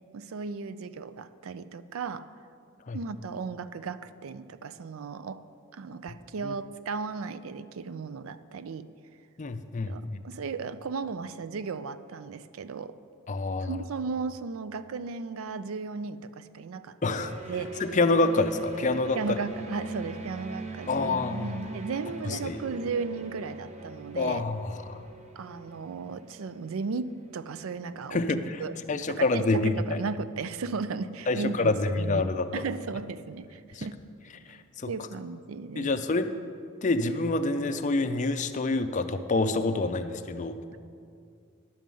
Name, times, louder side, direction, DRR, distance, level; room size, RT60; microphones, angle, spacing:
voice 1, 0.1-2.3 2.9-5.4 5.7-8.9 9.9-13.0 13.6-17.8 19.1-24.4 25.4-34.0 34.8-35.9, right 4 dB, 75° right, 13 dB, 0.4 m, -35 dB
voice 2, 9.4-9.9 13.3-13.8 17.0-17.3 17.8-19.2 20.9-21.6 22.3-22.6 24.2-25.0 28.1-28.6 28.9-29.7 31.3-32.5 33.8-33.9 34.5-34.9 35.8-36.3 36.8-40.5, left 3 dB, 35° left, 9 dB, 0.4 m, -27 dB
sound 1, 17.2-28.5, right 2 dB, 30° right, 0.7 m, -42 dB
11.0 x 5.3 x 7.6 m, 2.4 s
head